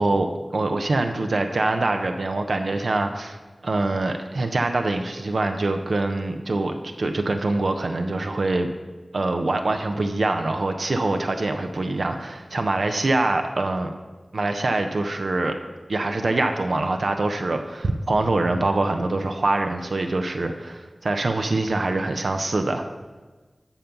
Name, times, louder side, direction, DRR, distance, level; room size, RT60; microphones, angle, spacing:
voice 1, 0.0-8.7 9.1-13.9 14.3-15.6 15.9-22.9, right 2 dB, 80° right, 5 dB, 0.7 m, -24 dB
11.5 x 3.9 x 6.9 m, 1.3 s
wide cardioid pair, 55°, 0 cm